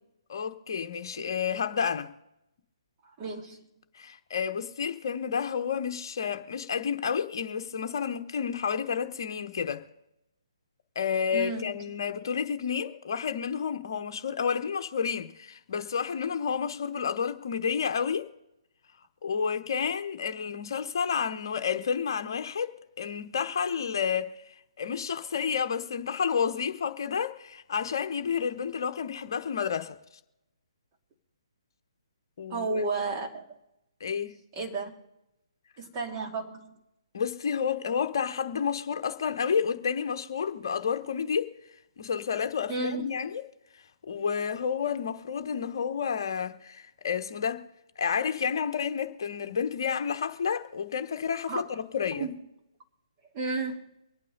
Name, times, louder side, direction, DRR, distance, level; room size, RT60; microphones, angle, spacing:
voice 1, 0.3-2.1 3.9-9.8 10.9-18.3 19.2-24.4 24.8-30.0 32.4-32.8 34.0-34.4 37.1-41.5 42.0-43.4 44.0-47.6 48.0-52.3, left 7 dB, 45° left, 1.2 m, -30 dB
voice 2, 3.2-3.6 11.3-11.7 32.5-33.6 34.6-34.9 35.8-36.7 42.7-43.3 51.5-51.6 52.2-52.3 53.3-53.8, right 3 dB, 25° right, 2.3 m, -32 dB
24.5 x 9.0 x 4.0 m
figure-of-eight pair, 135°, 3 cm